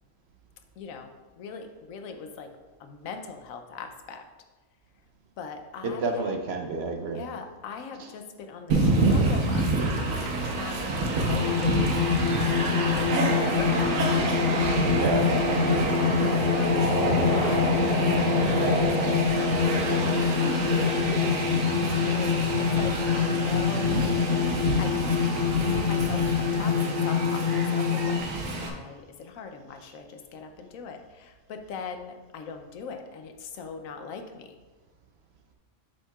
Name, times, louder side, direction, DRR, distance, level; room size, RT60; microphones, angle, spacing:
voice 1, 0.8-2.5 2.8-4.2 5.4-6.4 7.1-11.9 12.4-14.0 15.1-15.6 16.2-18.0 18.5-20.6 21.3-24.0 24.8-25.2 25.7-28.3 28.5-34.6, left 5 dB, 85° left, 6 dB, 1.1 m, -40 dB
voice 2, 5.8-7.2 10.7-10.9 14.9-15.9 17.0-17.5, right 3 dB, 60° right, 4 dB, 0.9 m, -31 dB
Train, 8.7-28.7, right 2 dB, 85° right, 1.3 m, -27 dB
sound 1, 11.3-28.2, left 8 dB, 65° left, 0.9 m, -26 dB
7.6 x 7.1 x 2.3 m, 1.3 s
omnidirectional pair, 1.4 m